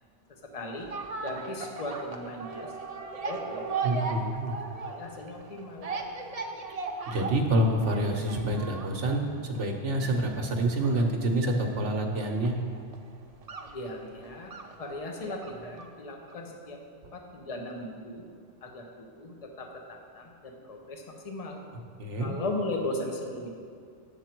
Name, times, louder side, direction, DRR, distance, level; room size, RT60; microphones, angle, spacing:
voice 1, 0.5-0.9 1.2-2.7 3.2-3.7 4.1-4.2 4.8-5.9 13.6-14.5 14.8-16.8 17.1-18.2 18.6-21.6 22.2-23.5, left 1 dB, 35° left, 1 dB, 0.9 m, -37 dB
sound 1, 0.8-16.0 16.3-16.4, right 4 dB, 45° right, 0.5 m, -38 dB
voice 2, 3.8-4.6 7.1-12.6 22.0-22.3, right 1 dB, 70° right, 3 dB, 1.2 m, -27 dB
8.9 x 7.2 x 4.5 m, 2.2 s
omnidirectional pair, 1.3 m